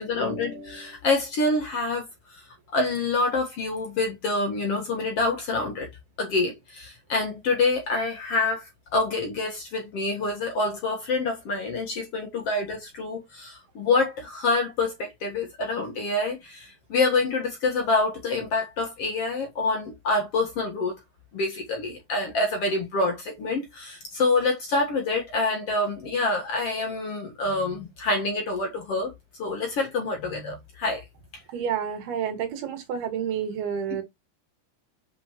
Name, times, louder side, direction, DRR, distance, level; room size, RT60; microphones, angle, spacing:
voice 1, 0.0-2.0 2.3-2.4 2.7-5.9 6.2-8.6 8.9-20.9 21.3-29.1 29.4-31.0, left 3 dB, 65° left, 1.4 m, -26 dB
voice 2, 31.5-34.0, right 8 dB, 65° right, 3.7 m, -29 dB
7.2 x 5.6 x 3.0 m
omnidirectional pair, 5.1 m